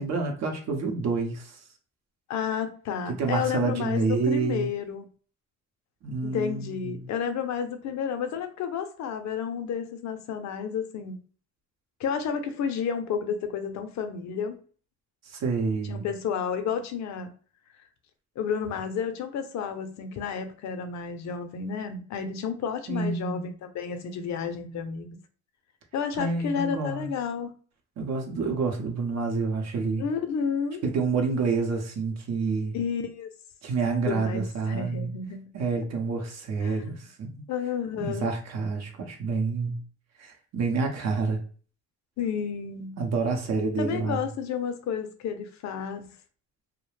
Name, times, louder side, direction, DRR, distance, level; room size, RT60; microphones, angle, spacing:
voice 1, 0.0-1.6 3.1-4.7 6.0-7.0 15.3-16.1 22.9-23.5 26.2-27.1 28.0-30.0 30.8-32.8 33.6-35.1 35.5-37.3 38.0-39.8 40.2-41.4 43.0-44.2, right 4 dB, 60° right, 0.7 m, -28 dB
voice 2, 2.3-5.0 6.2-11.2 12.0-14.6 15.8-17.3 18.4-25.1 25.9-27.5 30.0-30.8 32.7-33.3 34.0-35.5 36.6-36.8 37.5-38.3 42.2-43.0 43.8-46.1, left 7 dB, 65° left, 0.5 m, -31 dB
2.4 x 2.1 x 3.1 m
cardioid pair, 90°, 30 cm